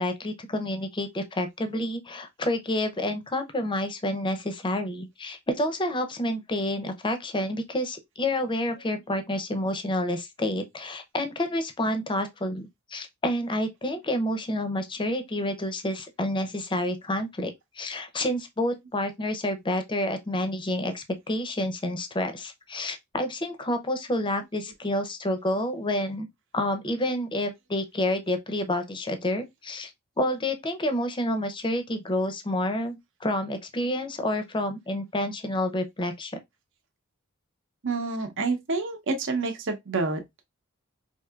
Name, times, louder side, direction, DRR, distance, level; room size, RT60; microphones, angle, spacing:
voice 1, 0.0-26.3 26.5-29.9 30.2-36.3, left 1 dB, 25° left, 0.6 m, -29 dB
voice 2, 37.8-40.5, right 3 dB, 60° right, 0.8 m, -28 dB
4.4 x 2.7 x 2.3 m
head